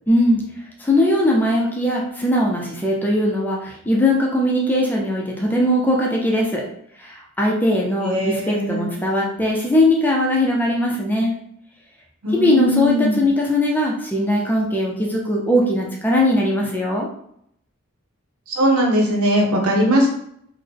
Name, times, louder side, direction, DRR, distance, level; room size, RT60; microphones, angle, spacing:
voice 1, 0.1-0.4 0.8-6.7 7.0-11.4 12.3-17.1, left 1 dB, 10° left, -2 dB, 0.4 m, -20 dB
voice 2, 8.0-8.9 12.2-13.2 18.6-20.1, equal, 90° right, 0 dB, 0.9 m, -19 dB
3.8 x 2.1 x 3.3 m, 0.72 s
head